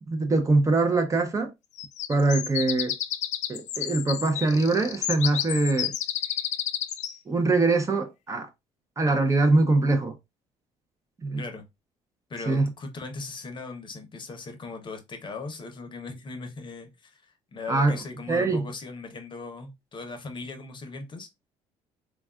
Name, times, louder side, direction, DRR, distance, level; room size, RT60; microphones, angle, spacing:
voice 1, 0.1-1.5 2.1-2.9 3.5-5.9 7.3-8.5 9.0-10.1 11.2-11.4 12.5-12.7 17.7-18.0 18.3-18.6, right 3 dB, 25° right, 0.6 m, -23 dB
sound 1, 1.8-7.2, left 11 dB, 65° left, 0.4 m, -31 dB
voice 2, 12.3-21.3, left 3 dB, 35° left, 0.7 m, -39 dB
3.3 x 2.3 x 2.3 m
cardioid pair, 90°, 13 cm